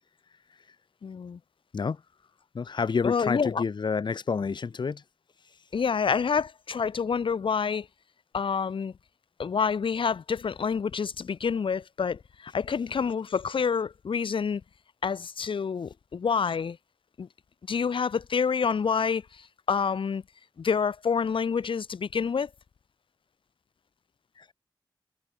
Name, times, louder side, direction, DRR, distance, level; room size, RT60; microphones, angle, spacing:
voice 1, 1.0-1.4 3.0-3.6 5.7-7.9 8.3-8.9 9.4-14.6 15.0-16.8 17.2-17.3 17.7-19.2 19.7-20.2 20.6-22.5, left 6 dB, 80° left, 1.2 m, -27 dB
voice 2, 2.5-5.0 5.5-5.6 24.4-24.5, left 5 dB, 65° left, 1.0 m, -29 dB
wide cardioid pair, 85°, 9 cm